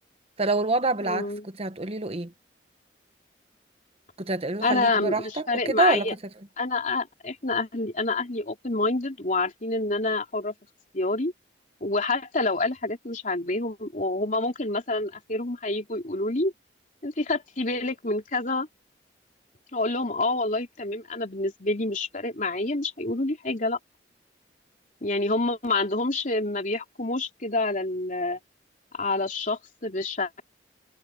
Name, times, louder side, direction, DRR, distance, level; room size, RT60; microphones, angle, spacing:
voice 1, 0.4-2.3 4.2-6.1, right 2 dB, 35° right, 1.2 m, -26 dB
voice 2, 1.0-1.5 4.6-6.1 6.6-10.5 10.9-11.3 11.8-16.5 17.0-18.7 19.7-23.8 25.0-28.4 28.9-30.3, left 2 dB, 45° left, 3.3 m, -27 dB
head